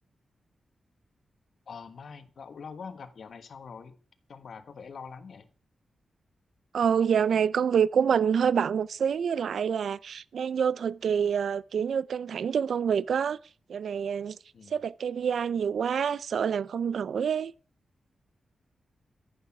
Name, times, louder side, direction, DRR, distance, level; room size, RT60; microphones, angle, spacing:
voice 1, 1.7-4.0 4.3-5.5 14.5-14.7, left 5 dB, 60° left, 1.4 m, -44 dB
voice 2, 6.7-13.4 13.7-14.4 14.7-17.5, right 7 dB, 75° right, 0.6 m, -27 dB
14.0 x 10.5 x 6.0 m
wide cardioid pair, 145°, 0 cm